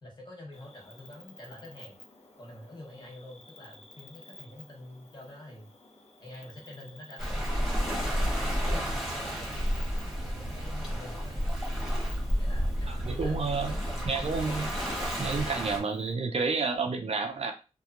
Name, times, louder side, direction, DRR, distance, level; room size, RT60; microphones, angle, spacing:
voice 1, 0.0-2.0 2.4-5.7 6.2-9.5 9.8-11.6 12.4-14.0 16.3-16.4, left 1 dB, 40° left, -1 dB, 1.1 m, -47 dB
Cricket, 0.5-16.1, left 2 dB, 65° left, 0.7 m, -54 dB
Waves surf, 7.2-15.8, equal, ahead, 1.1 m, -31 dB
voice 2, 12.9-13.7 14.0-14.7 15.2-17.5, right 4 dB, 60° right, 4 dB, 0.4 m, -30 dB
2.8 x 2.2 x 2.4 m, 0.31 s
wide cardioid pair, 85°, 12 cm